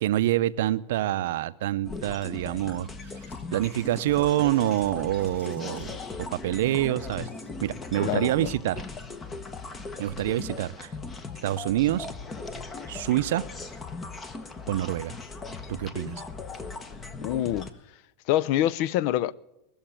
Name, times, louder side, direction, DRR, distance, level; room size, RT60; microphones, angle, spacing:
voice 1, 0.0-2.9 3.5-6.0 6.4-7.3 7.6-8.8 10.0-10.9 11.4-12.1 12.9-13.5 14.7-15.1 15.7-16.2, right 14 dB, 75° right, 0.5 m, -26 dB
sound 1, 1.8-17.7, left 4 dB, 20° left, 1.0 m, -38 dB
sound 2, 2.8-6.0 7.2-7.5, left 2 dB, 85° left, 5.4 m, -58 dB
voice 2, 8.0-8.5 17.2-17.7 18.3-19.3, left 13 dB, 55° left, 0.4 m, -25 dB
20.0 x 7.1 x 8.9 m
supercardioid pair, 135°, 0 cm